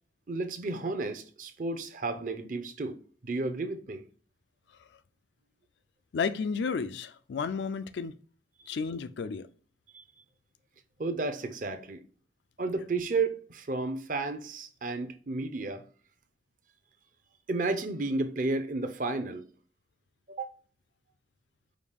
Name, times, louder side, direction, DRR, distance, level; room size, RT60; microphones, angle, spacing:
voice 1, 0.3-4.0 8.6-8.8 9.9-10.0 11.0-12.0 12.6-15.8 17.5-19.4 20.3-20.5, right 3 dB, 45° right, 0.6 m, -32 dB
voice 2, 6.1-8.2 8.7-9.5, left 5 dB, 75° left, 0.4 m, -32 dB
5.0 x 2.4 x 3.4 m
head